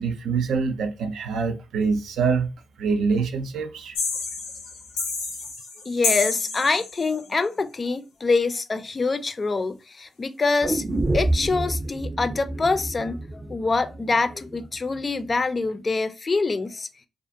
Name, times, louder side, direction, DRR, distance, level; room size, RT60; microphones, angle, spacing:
voice 1, 0.0-2.5 2.8-4.0, right 5 dB, 70° right, 0.4 m, -25 dB
sound 1, 3.9-7.2, left 4 dB, 90° left, 0.5 m, -29 dB
voice 2, 5.9-10.8 11.1-16.9, left 3 dB, 40° left, 0.4 m, -25 dB
sound 2, 10.6-14.7 15.0-15.1, right 2 dB, 30° right, 0.6 m, -28 dB
2.4 x 2.4 x 2.6 m
hypercardioid pair, 40°, 0 cm